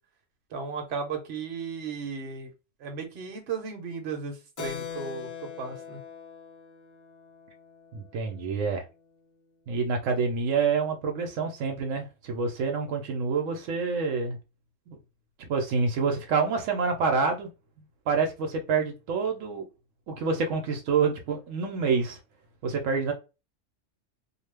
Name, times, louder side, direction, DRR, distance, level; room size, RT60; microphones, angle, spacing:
voice 1, 0.5-2.5 2.8-5.3 5.6-6.0, right 5 dB, 60° right, 1.0 m, -35 dB
Keyboard (musical), 4.6-8.7, left 8 dB, 55° left, 0.6 m, -42 dB
voice 2, 7.9-8.8 9.7-14.4 14.9-15.0 15.5-17.5 18.1-19.7 20.1-22.2 22.6-23.1, right 5 dB, 85° right, 1.0 m, -27 dB
2.4 x 2.3 x 3.2 m
omnidirectional pair, 1.3 m